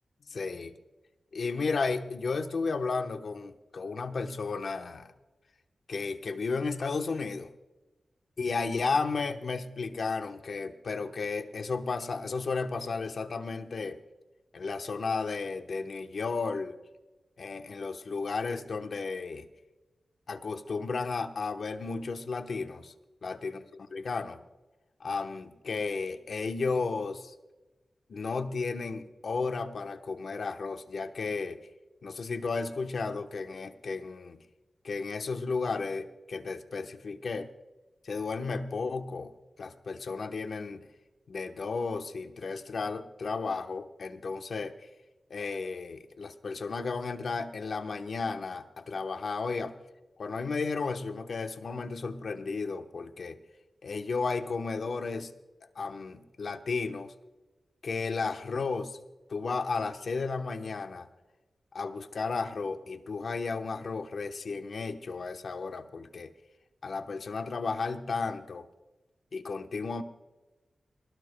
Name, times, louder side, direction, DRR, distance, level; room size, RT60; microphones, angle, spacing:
voice 1, 0.3-0.7 1.3-5.1 5.9-7.5 8.4-14.0 14.5-16.8 17.4-19.5 20.3-22.9 23.2-23.6 23.9-24.4 25.0-27.3 28.1-31.6 32.0-34.4 34.8-37.5 38.0-39.3 39.6-40.8 41.3-44.7 45.3-49.7 50.2-53.4 53.8-55.3 55.8-57.1 57.8-59.0 59.3-61.1 61.7-66.3 66.8-68.7 69.3-70.0, left 4 dB, 70° left, 7 dB, 1.0 m, -33 dB
22.5 x 19.0 x 2.2 m, 1.1 s
cardioid pair, 65°, 0 cm